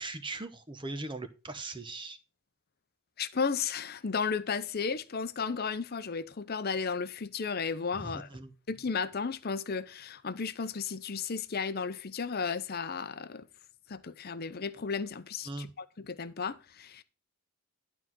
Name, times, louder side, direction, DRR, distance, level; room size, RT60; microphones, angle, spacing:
voice 1, 0.0-2.2 8.0-8.5 15.5-15.7, right 2 dB, 20° right, 0.9 m, -39 dB
voice 2, 3.2-8.3 8.7-13.5 13.9-17.0, left 5 dB, 45° left, 0.7 m, -34 dB
11.5 x 4.0 x 6.1 m
head